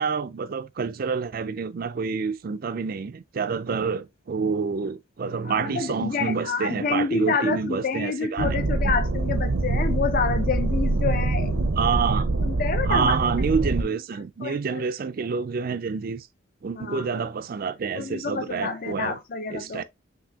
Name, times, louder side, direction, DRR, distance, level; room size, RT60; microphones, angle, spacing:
voice 1, 0.0-8.6 11.7-12.3 12.9-16.3 16.6-19.2 19.5-19.8, right 5 dB, 45° right, 0.4 m, -28 dB
voice 2, 5.4-11.6 12.4-13.2 14.4-14.8 16.7-17.2 17.9-19.8, left 5 dB, 45° left, 0.6 m, -28 dB
sound 1, 8.4-13.8, right 2 dB, 80° right, 0.7 m, -24 dB
6.0 x 2.7 x 2.8 m
head